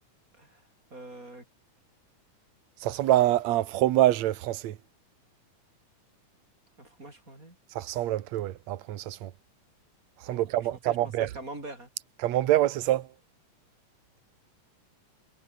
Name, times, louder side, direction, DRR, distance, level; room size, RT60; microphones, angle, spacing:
voice 1, 0.9-1.4 6.8-7.6 10.3-11.9, right 2 dB, 25° right, 7.2 m, -44 dB
voice 2, 2.8-4.8 7.8-9.3 10.2-11.3 12.2-13.1, right 14 dB, 65° right, 2.3 m, -25 dB
omnidirectional pair, 3.7 m